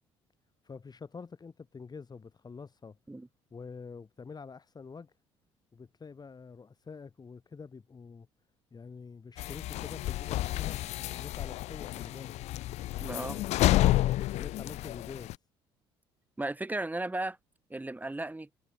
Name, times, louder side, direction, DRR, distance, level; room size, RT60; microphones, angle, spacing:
voice 1, 0.6-3.0 3.5-5.1 5.7-8.3 8.7-12.3 13.2-15.3, left 5 dB, 30° left, 6.6 m, -46 dB
sound 1, 9.4-15.3, left 16 dB, 55° left, 0.7 m, -30 dB
voice 2, 13.0-13.4 16.4-17.4 17.7-18.5, right 2 dB, 10° right, 7.4 m, -35 dB
figure-of-eight pair, 50°, 14 cm